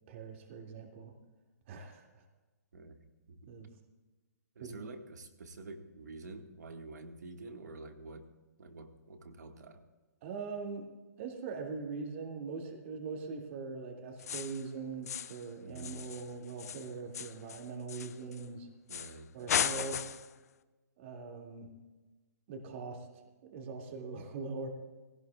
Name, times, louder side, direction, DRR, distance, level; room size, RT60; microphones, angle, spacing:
voice 1, 0.1-1.1 1.7-2.2 3.5-3.7 4.6-4.9 10.2-10.9 11.2-18.7 19.3-20.0 21.0-21.7 22.5-23.1 23.4-24.7, right 4 dB, 45° right, 2 dB, 2.3 m, -42 dB
voice 2, 4.5-8.3 8.6-9.8 15.6-16.0 18.9-19.3, right 3 dB, 75° right, 5 dB, 1.7 m, -48 dB
sound 1, 14.2-14.7 15.1-15.5 15.8-18.5 18.9-19.2 19.5-20.3, left 8 dB, 65° left, 0.6 m, -36 dB
19.0 x 17.0 x 2.4 m, 1.2 s
hypercardioid pair, 130°, 9 cm